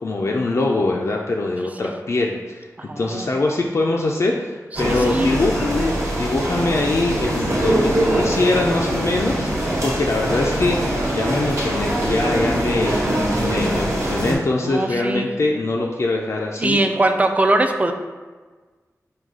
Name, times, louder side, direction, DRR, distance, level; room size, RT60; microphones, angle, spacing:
voice 1, 0.0-13.0 13.4-16.8, left 2 dB, 55° left, -1 dB, 0.3 m, -23 dB
voice 2, 2.8-3.3 4.7-5.3 14.6-15.3 16.6-17.9, right 2 dB, 25° right, 6 dB, 0.3 m, -21 dB
sound 1, 4.7-14.3, right 1 dB, 55° right, 1.2 m, -22 dB
4.8 x 2.3 x 3.6 m, 1.4 s
wide cardioid pair, 90°, 6 cm